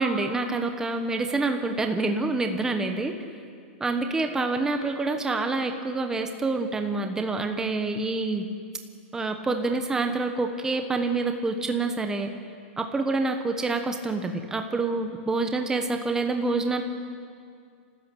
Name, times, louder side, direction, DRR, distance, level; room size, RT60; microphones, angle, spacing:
voice 1, 0.0-3.2 3.8-8.4 9.1-12.3 12.8-16.8, right 3 dB, 10° right, 5 dB, 1.1 m, -27 dB
29.5 x 13.5 x 8.5 m, 2.3 s
supercardioid pair, 155°, 7 cm